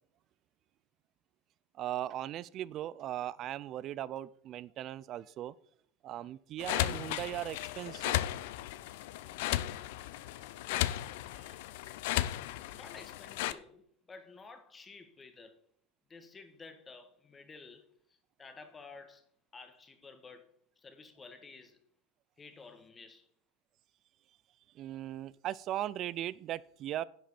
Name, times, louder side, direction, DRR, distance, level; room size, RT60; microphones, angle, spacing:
voice 1, 1.8-5.5 6.0-8.2 10.7-10.8 11.3-11.5 24.8-27.0, right 12 dB, 45° right, 0.5 m, -38 dB
sound 1, 6.6-13.5, left 14 dB, 70° left, 0.6 m, -35 dB
voice 2, 12.7-15.6 16.1-20.5 20.8-21.8 22.4-23.3, left 4 dB, 20° left, 1.6 m, -52 dB
10.5 x 7.6 x 4.3 m
hypercardioid pair, 105°, 0 cm